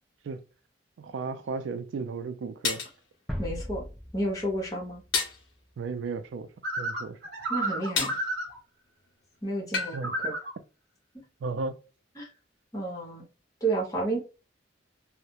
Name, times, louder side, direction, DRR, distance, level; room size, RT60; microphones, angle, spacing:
voice 1, 1.0-2.8 5.8-6.5 6.8-7.2 9.9-10.1 11.4-11.8, right 4 dB, 80° right, 0.3 m, -34 dB
sound 1, 1.5-1.6 2.6-3.0 5.1-5.4 8.0-8.3 9.7-10.0, left 5 dB, 80° left, 0.7 m, -29 dB
sound 2, 3.3-6.1, equal, ahead, 0.3 m, -39 dB
voice 2, 3.4-3.8 4.1-5.0 7.5-8.2 9.4-10.3 12.2-12.3 12.7-13.2 13.6-14.2, right 2 dB, 20° left, 0.9 m, -31 dB
sound 3, 6.6-8.6 9.9-10.5, right 1 dB, 55° right, 1.0 m, -31 dB
2.3 x 2.0 x 2.8 m
head